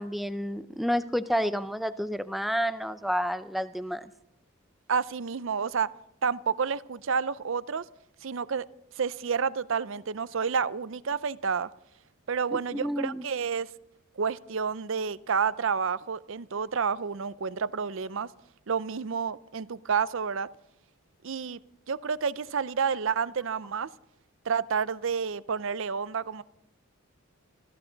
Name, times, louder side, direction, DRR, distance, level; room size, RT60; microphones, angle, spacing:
voice 1, 0.0-4.1 12.5-13.2, equal, ahead, 0.5 m, -30 dB
voice 2, 4.9-5.9 6.2-7.8 8.2-8.7 9.0-11.7 12.3-13.7 14.2-18.3 18.7-20.5 21.2-21.6 21.9-23.9 24.4-26.4, right 6 dB, 60° right, 0.5 m, -29 dB
25.0 x 14.5 x 3.9 m
head